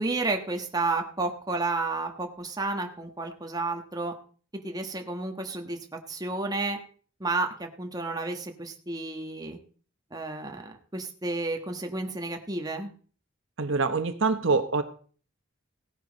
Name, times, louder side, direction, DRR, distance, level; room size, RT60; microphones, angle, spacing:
voice 1, 0.0-4.1 4.6-6.8 7.2-9.6 10.1-12.9, right 3 dB, 15° right, 3 dB, 1.2 m, -31 dB
voice 2, 13.6-14.8, right 4 dB, 60° right, 9 dB, 1.0 m, -25 dB
17.0 x 10.5 x 4.1 m, 0.43 s
head